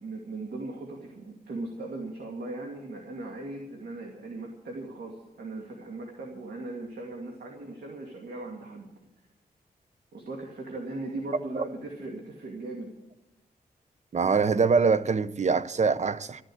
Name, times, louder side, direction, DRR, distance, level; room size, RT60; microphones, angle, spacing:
voice 1, 0.0-8.9 10.1-12.9, right 2 dB, 75° right, 2.4 m, -38 dB
voice 2, 14.1-16.4, right 5 dB, 45° right, 0.7 m, -24 dB
13.5 x 10.5 x 7.9 m
cardioid pair, 70°, 17 cm